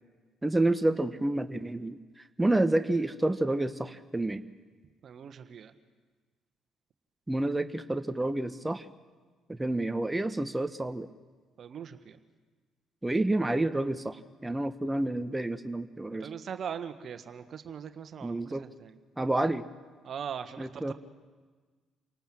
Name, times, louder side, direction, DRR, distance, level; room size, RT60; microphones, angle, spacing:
voice 1, 0.4-4.5 7.3-8.9 9.5-11.1 13.0-16.3 18.2-18.6 19.2-19.7 20.6-20.9, right 2 dB, 15° right, 10 dB, 1.2 m, -29 dB
voice 2, 5.0-5.7 11.6-12.2 16.2-19.0 20.0-20.9, right 7 dB, 55° right, 10 dB, 1.5 m, -40 dB
28.5 x 18.5 x 7.8 m, 1.4 s
hypercardioid pair, 55°, 0 cm